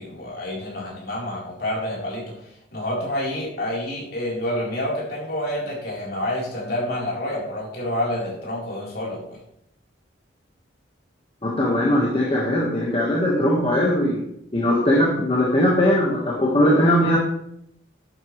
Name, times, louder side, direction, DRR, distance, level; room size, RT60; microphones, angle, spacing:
voice 1, 0.0-9.4, left 1 dB, 50° left, -4 dB, 4.0 m, -28 dB
voice 2, 11.4-14.2 14.5-17.2, left 1 dB, 30° left, -3 dB, 1.5 m, -20 dB
11.0 x 9.4 x 3.2 m, 0.75 s
head